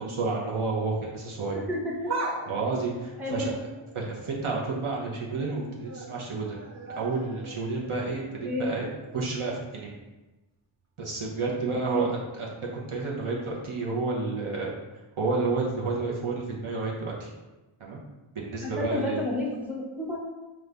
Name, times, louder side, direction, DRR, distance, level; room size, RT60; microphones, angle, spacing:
voice 1, 0.0-1.6 2.5-3.5 3.9-6.6 7.0-8.9 9.1-10.0 11.0-14.7 15.2-17.3 17.8-18.0 18.3-19.2, right 3 dB, 75° right, -3 dB, 1.0 m, -30 dB
voice 2, 1.5-2.3 3.2-3.6 8.4-8.7 11.7-11.8 18.6-20.2, left 2 dB, 5° right, -4 dB, 0.9 m, -31 dB
sound 1, 2.1-4.7 5.1-5.5 5.8-9.8 10.1-10.2 11.2-11.3, right 3 dB, 35° right, 0.5 m, -40 dB
4.7 x 2.6 x 3.4 m, 1.1 s
wide cardioid pair, 70°, 50 cm